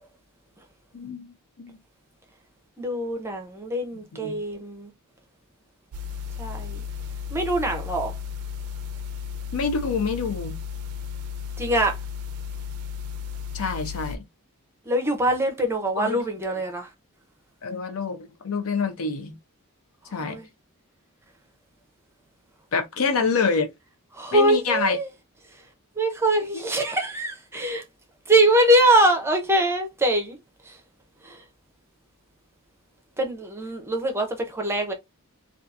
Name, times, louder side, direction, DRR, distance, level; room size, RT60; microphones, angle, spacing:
voice 1, 0.9-1.8 3.9-4.4 9.5-10.6 13.5-14.2 16.0-16.2 17.6-19.4 20.1-20.4 22.7-23.7 24.3-25.0 26.5-26.6, left 4 dB, 70° left, 0.6 m, -27 dB
voice 2, 2.8-4.9 6.4-6.8 7.3-8.2 11.6-12.0 14.9-16.9 20.2-20.5 24.1-25.1 26.0-27.8 28.3-30.4 30.6-30.8 31.2-31.4 33.2-34.9, right 1 dB, 10° right, 0.6 m, -23 dB
sound 1, 5.9-14.2, left 7 dB, 85° right, 0.4 m, -34 dB
2.7 x 2.4 x 2.3 m
head